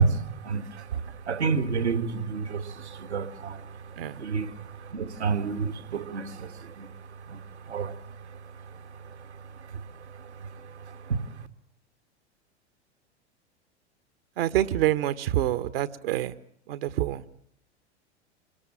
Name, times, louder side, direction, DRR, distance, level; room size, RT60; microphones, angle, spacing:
voice 1, 0.0-6.9 7.3-11.2, right 5 dB, 75° right, 2.1 m, -31 dB
voice 2, 14.4-16.3 16.7-17.2, right 13 dB, 55° right, 1.4 m, -26 dB
27.5 x 22.0 x 9.0 m
figure-of-eight pair, 90°, 34 cm